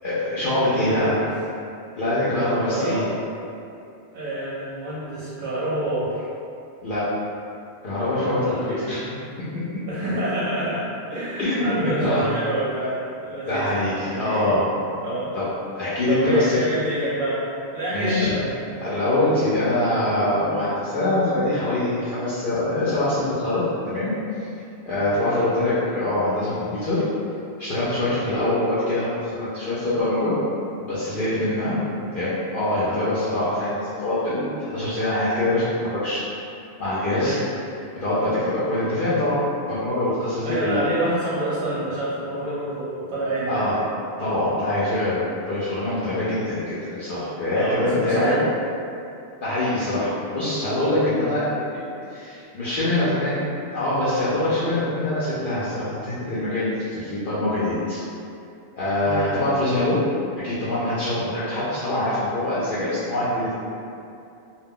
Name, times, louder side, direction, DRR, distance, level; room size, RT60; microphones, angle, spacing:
voice 1, 0.0-1.1 1.9-3.0 6.8-7.0 7.8-9.0 11.4-12.3 13.5-14.7 15.3-15.5 15.7-16.6 17.9-18.3 18.8-24.1 24.9-27.0 27.6-30.3 30.9-31.8 32.1-36.2 36.8-37.4 38.0-39.4 39.7-40.8 43.5-43.8 44.2-48.3 49.4-51.4 51.7-51.8 52.1-53.4 53.7-58.0 58.8-60.0 60.4-63.7, left 1 dB, 60° left, -11 dB, 0.7 m, -24 dB
voice 2, 0.6-1.2 2.7-3.0 4.1-6.3 8.4-8.8 9.9-13.7 14.0-14.5 15.0-15.3 16.1-17.4 17.7-18.5 25.1-25.6 28.2-28.3 31.8-32.0 32.8-33.0 37.2-37.4 40.4-43.7 47.5-48.5 51.2-51.3 59.0-59.3, right 1 dB, 60° right, -9 dB, 0.7 m, -27 dB
2.2 x 2.1 x 3.6 m, 2.6 s
omnidirectional pair, 1.1 m